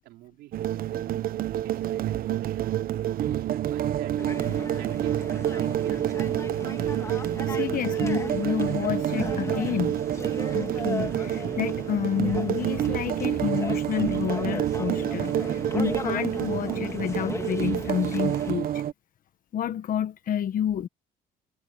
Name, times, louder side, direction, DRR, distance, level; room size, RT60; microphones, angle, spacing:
voice 1, 0.0-2.7 3.2-4.2 4.5-6.3, right 16 dB, 85° right, 4.6 m, -47 dB
sound 1, 0.5-18.9, right 11 dB, 60° right, 1.0 m, -28 dB
sound 2, 4.2-18.5, left 3 dB, 15° left, 2.3 m, -37 dB
voice 2, 7.5-10.0 10.5-18.8 19.5-20.9, left 10 dB, 55° left, 1.3 m, -29 dB
cardioid pair, 110°, 17 cm